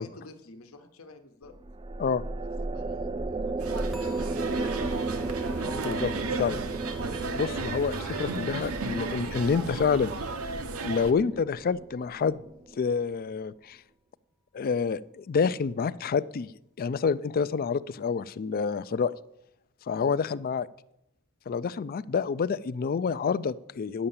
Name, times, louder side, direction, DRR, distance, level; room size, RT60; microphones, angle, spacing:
voice 1, 0.0-1.5 2.3-5.7 19.9-20.1, left 3 dB, 75° left, 7 dB, 1.1 m, -50 dB
sound 1, 1.5-12.9, right 3 dB, 25° right, 0.4 m, -35 dB
sound 2, 3.6-11.1, right 3 dB, 85° right, 0.9 m, -34 dB
sound 3, 3.9-11.0 11.3-11.7 12.2-12.3, left 4 dB, ahead, 0.8 m, -53 dB
voice 2, 7.4-10.1 10.8-12.4 12.8-13.8 14.5-16.5 16.8-19.1 19.9-20.7 21.5-24.1, left 5 dB, 45° left, 17 dB, 0.4 m, -28 dB
10.0 x 6.7 x 7.1 m, 0.79 s
head